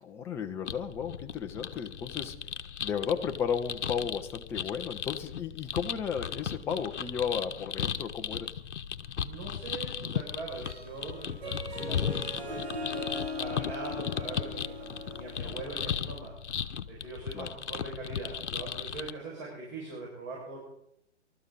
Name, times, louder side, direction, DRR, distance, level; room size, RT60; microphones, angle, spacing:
voice 1, 0.0-2.4 2.8-8.5 17.3-17.5, left 7 dB, 5° left, 5 dB, 0.5 m, -34 dB
sound 1, 0.7-19.1, left 8 dB, 70° left, 1.0 m, -36 dB
voice 2, 9.2-16.3 16.9-20.6, right 3 dB, 35° right, -3 dB, 6.3 m, -42 dB
Harp, 10.5-16.1, left 1 dB, 55° right, 6.8 m, -39 dB
24.5 x 13.0 x 4.1 m, 0.79 s
hypercardioid pair, 130°, 36 cm